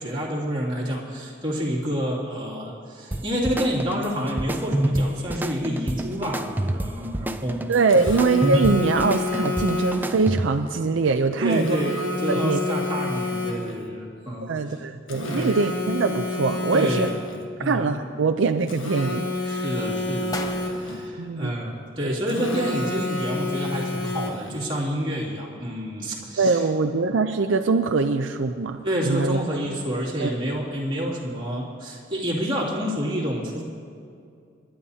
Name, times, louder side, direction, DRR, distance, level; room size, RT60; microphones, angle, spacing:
voice 1, 0.0-7.7 11.4-14.8 15.3-15.6 16.7-17.1 17.6-17.9 19.5-20.4 20.7-26.6 28.8-33.6, equal, 25° right, -5 dB, 2.6 m, -28 dB
sound 1, 3.1-10.7, right 1 dB, 10° right, 0.3 m, -28 dB
voice 2, 7.7-11.8 12.3-12.6 14.5-17.1 17.6-19.7 21.2-21.5 26.4-29.4 30.2-30.3, right 4 dB, 70° right, 6 dB, 0.5 m, -23 dB
Telephone, 7.9-10.2 11.5-13.9 15.1-17.4 18.7-21.1 22.3-24.6, left 2 dB, 80° left, 1.4 m, -29 dB
sound 2, 17.7-18.6 19.2-19.5 20.0-20.1 20.3-22.2 22.5-22.6, left 1 dB, 20° left, 0.8 m, -39 dB
28.5 x 11.5 x 2.8 m, 2.4 s
head